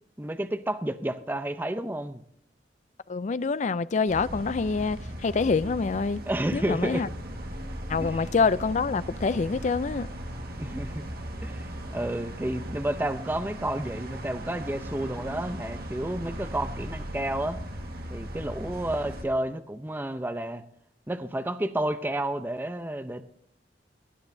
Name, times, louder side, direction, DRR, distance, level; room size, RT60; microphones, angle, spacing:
voice 1, 0.2-2.2 6.3-7.0 8.0-8.3 10.6-11.0 11.4-17.6 18.1-20.6 21.1-23.2, right 1 dB, 10° right, 0.6 m, -31 dB
voice 2, 3.1-6.2 6.5-7.1 7.9-10.1, left 4 dB, 40° left, 0.4 m, -26 dB
sound 1, 4.1-19.2, equal, 60° right, 1.7 m, -38 dB
17.5 x 10.0 x 2.7 m
head